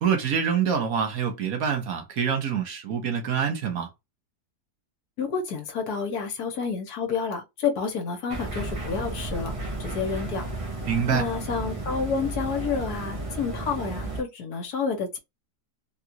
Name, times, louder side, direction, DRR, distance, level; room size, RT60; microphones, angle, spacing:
voice 1, 0.0-3.9 10.9-11.2, right 7 dB, 65° right, 1.2 m, -26 dB
voice 2, 5.2-10.4 11.1-15.2, left 5 dB, 70° left, 1.5 m, -29 dB
sound 1, 8.3-14.2, right 2 dB, 30° right, 0.6 m, -33 dB
3.6 x 2.4 x 2.8 m
omnidirectional pair, 1.8 m